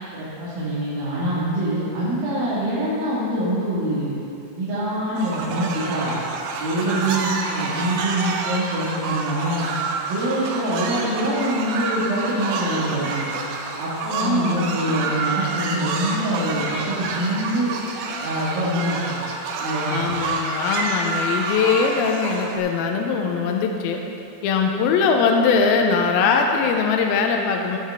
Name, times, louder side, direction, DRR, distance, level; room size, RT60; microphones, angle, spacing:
voice 1, 0.1-4.1 4.6-6.2 6.6-9.6 10.1-13.3 13.8-17.7 18.2-19.2 19.6-20.0, right 1 dB, 70° right, -11 dB, 3.6 m, -25 dB
sound 1, 5.2-22.6, right 4 dB, 90° right, 2.8 m, -28 dB
voice 2, 6.9-7.2 14.2-14.7 18.6-18.7 19.9-24.0 24.4-27.8, left 5 dB, 85° left, 3 dB, 2.5 m, -21 dB
14.0 x 8.3 x 3.6 m, 2.7 s
omnidirectional pair, 4.4 m